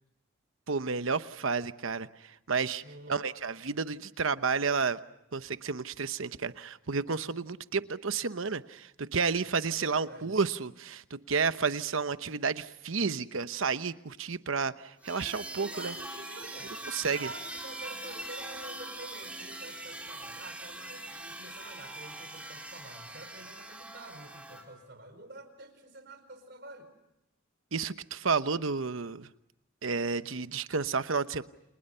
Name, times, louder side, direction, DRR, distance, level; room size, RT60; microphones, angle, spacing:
voice 1, 0.7-2.8 3.1-5.0 5.3-15.9 16.9-17.3 27.7-29.3 29.8-31.4, right 5 dB, 80° right, 12 dB, 1.0 m, -31 dB
voice 2, 2.8-3.3 9.8-10.3 15.6-26.9, right 2 dB, 55° right, 9 dB, 4.8 m, -48 dB
sound 1, 15.0-24.6, right 2 dB, 5° right, 3.6 m, -42 dB
29.5 x 29.5 x 5.6 m, 0.84 s
head